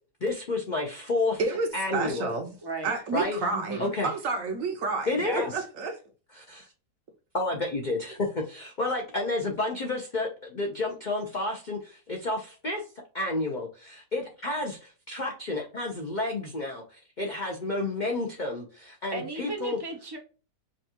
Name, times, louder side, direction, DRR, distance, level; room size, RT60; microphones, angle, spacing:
voice 1, 0.2-1.4 1.7-2.3 3.1-3.4 3.8-4.1 5.1-5.5 6.3-6.7 7.3-12.8 13.1-19.8, left 2 dB, 60° left, 0.4 m, -30 dB
voice 2, 1.4-2.5 2.8-6.0, right 3 dB, 65° right, 0.9 m, -30 dB
voice 3, 2.6-2.9 3.5-3.9 5.2-5.5 19.1-20.2, right 2 dB, 30° right, 0.4 m, -35 dB
5.2 x 2.3 x 2.8 m
omnidirectional pair, 1.7 m